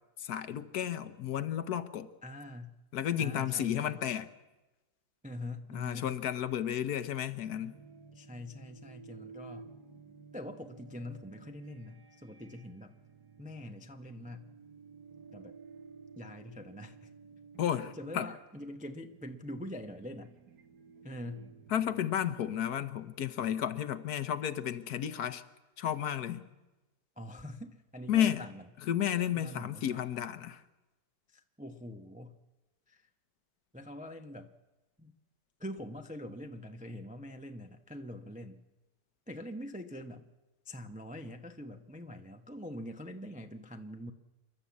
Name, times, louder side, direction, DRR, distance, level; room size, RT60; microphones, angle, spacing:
voice 1, 0.2-2.1 2.9-4.3 5.7-7.7 17.6-18.3 21.7-25.4 25.8-26.5 28.1-28.5 28.9-30.6, left 10 dB, 65° left, 1.3 m, -32 dB
voice 2, 2.2-2.8 3.2-4.0 5.2-6.1 8.1-9.7 10.3-12.9 13.4-14.5 15.3-15.6 16.2-17.1 17.9-20.3 21.0-21.5 27.2-28.6 29.3-30.0 31.3-32.4 32.9-33.1 33.7-34.5 35.0-35.1 35.6-38.6 39.3-40.3 40.6-44.1, left 1 dB, 10° right, 0.4 m, -44 dB
sound 1, 7.4-22.6, right 5 dB, 65° right, 1.8 m, -54 dB
27.5 x 12.0 x 8.3 m
omnidirectional pair, 1.9 m